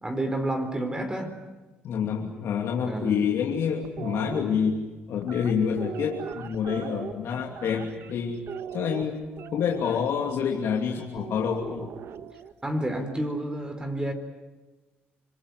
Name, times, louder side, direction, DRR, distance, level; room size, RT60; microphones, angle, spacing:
voice 1, 0.0-1.3 2.8-3.1 12.6-14.1, right 1 dB, 20° right, 5 dB, 4.3 m, -29 dB
voice 2, 1.8-4.8 5.1-8.4 8.7-9.2 9.5-11.9, left 7 dB, 70° left, 1 dB, 2.7 m, -27 dB
sound 1, 3.8-4.4 5.2-8.1 8.5-10.0 11.2-12.5, right 8 dB, 65° right, 1.3 m, -39 dB
26.0 x 22.5 x 9.5 m, 1.2 s
supercardioid pair, 70°, 5 cm